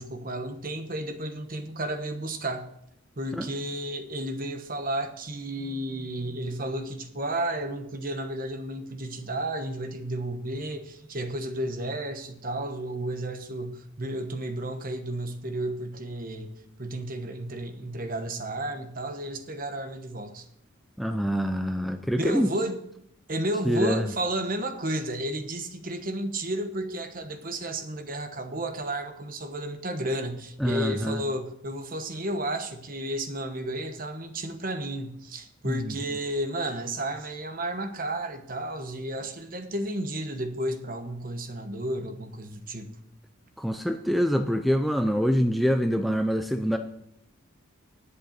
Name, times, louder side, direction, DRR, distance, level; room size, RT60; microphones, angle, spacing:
voice 1, 0.0-2.7 3.2-16.5 16.8-20.5 22.2-22.8 23.3-42.9, right 1 dB, 40° right, 1.1 m, -32 dB
voice 2, 21.0-22.5 23.6-24.1 30.6-31.2 35.6-35.9 43.6-46.8, equal, ahead, 0.5 m, -25 dB
10.5 x 8.2 x 6.6 m
head